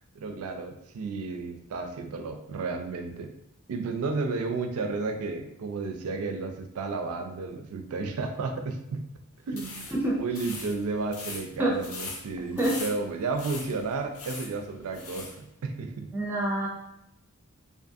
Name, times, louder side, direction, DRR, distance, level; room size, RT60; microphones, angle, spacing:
voice 1, 0.1-3.3 3.7-9.1 9.5-16.1, right 4 dB, 90° right, 5 dB, 0.4 m, -32 dB
sound 1, 9.5-15.4, left 3 dB, 85° left, 0.6 m, -41 dB
voice 2, 16.1-16.7, right 1 dB, 10° right, -4 dB, 0.5 m, -26 dB
2.5 x 2.4 x 2.6 m, 0.81 s
head